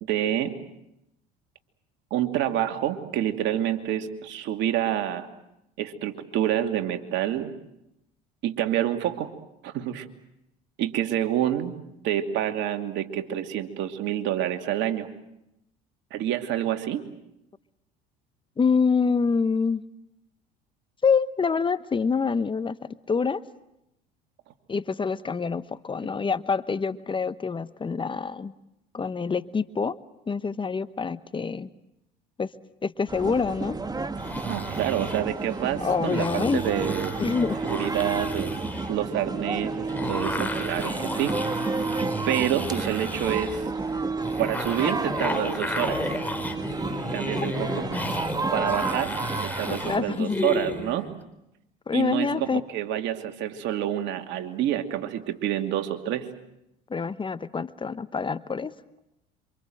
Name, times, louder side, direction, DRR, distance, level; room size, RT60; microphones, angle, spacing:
voice 1, 0.0-0.5 2.1-5.3 5.8-7.5 8.4-9.3 9.6-10.1 10.8-11.8 12.0-15.1 16.1-17.0 34.5-37.1 37.6-38.5 38.9-41.4 42.3-43.7 44.4-46.0 47.1-47.8 48.5-49.2 49.4-51.1 51.9-56.3, right 11 dB, 60° right, 6 dB, 2.6 m, -28 dB
voice 2, 18.6-19.8 21.0-23.4 24.7-28.5 28.9-30.0 30.3-31.7 32.4-32.5 32.8-33.8 35.8-36.6 37.2-37.6 47.4-47.5 49.6-50.4 51.9-52.6 56.9-58.7, left 5 dB, 25° left, 14 dB, 1.1 m, -26 dB
sound 1, 33.1-50.0, right 3 dB, 20° right, 1.7 m, -31 dB
sound 2, 34.2-51.1, left 2 dB, 10° left, 4.5 m, -34 dB
27.0 x 25.5 x 7.8 m, 0.84 s
hypercardioid pair, 75°, 21 cm